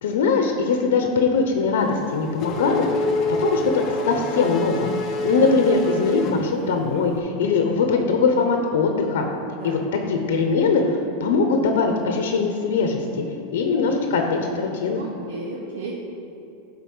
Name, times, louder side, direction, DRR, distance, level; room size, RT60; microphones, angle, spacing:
voice 1, 0.0-2.8 3.4-3.6 4.0-9.2 9.6-13.0 13.5-15.0, left 4 dB, 85° left, 3 dB, 0.9 m, -21 dB
Race car auto racing / Accelerating revving vroom, 1.8-7.1, left 3 dB, 35° left, 0.7 m, -27 dB
voice 2, 5.2-5.9 9.5-9.8 14.9-16.0, right 3 dB, 90° right, -3 dB, 1.2 m, -34 dB
11.0 x 4.1 x 5.5 m, 2.8 s
supercardioid pair, 155°, 0 cm